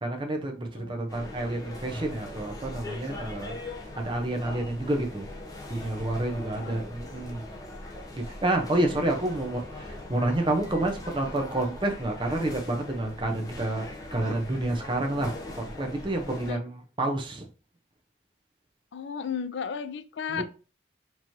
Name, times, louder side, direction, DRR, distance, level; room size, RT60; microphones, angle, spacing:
voice 1, 0.0-5.3 5.7-7.4 8.2-17.5 20.3-20.4, right 1 dB, 25° right, 0.7 m, -29 dB
sound 1, 1.1-16.5, left 1 dB, 20° left, 0.8 m, -41 dB
voice 2, 6.5-6.9 16.5-16.6 18.9-20.4, left 6 dB, 80° left, 0.4 m, -34 dB
4.6 x 3.0 x 2.7 m
head